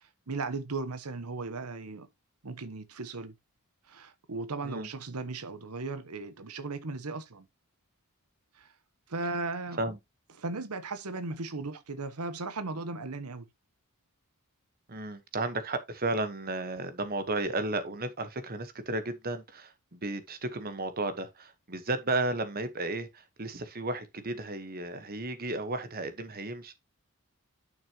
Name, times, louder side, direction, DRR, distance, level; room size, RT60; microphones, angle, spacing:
voice 1, 0.0-2.1 2.4-3.3 3.9-7.4 8.5-8.7 9.1-9.8 10.4-13.5, right 3 dB, 90° right, 1.1 m, -37 dB
voice 2, 14.9-26.7, right 2 dB, 45° right, 1.3 m, -33 dB
10.5 x 6.2 x 3.0 m
head